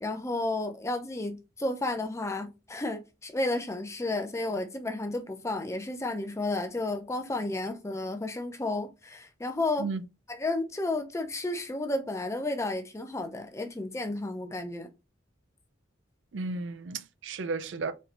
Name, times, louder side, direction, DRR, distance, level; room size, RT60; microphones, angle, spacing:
voice 1, 0.0-9.9 10.3-14.9, left 2 dB, 15° left, 0.5 m, -32 dB
voice 2, 16.3-17.9, right 4 dB, 70° right, 0.4 m, -33 dB
4.3 x 3.1 x 2.5 m
head